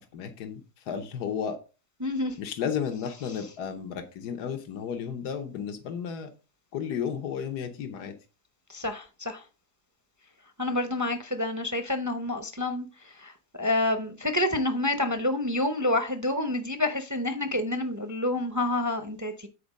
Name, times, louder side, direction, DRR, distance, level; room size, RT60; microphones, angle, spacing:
voice 1, 0.1-1.6 2.4-6.3 6.7-8.1, left 7 dB, 85° left, 1.5 m, -33 dB
voice 2, 2.0-2.4 8.7-9.4 10.6-12.9 13.2-13.3 13.6-19.5, left 2 dB, 20° right, 0.5 m, -28 dB
8.5 x 4.5 x 5.2 m
omnidirectional pair, 1.7 m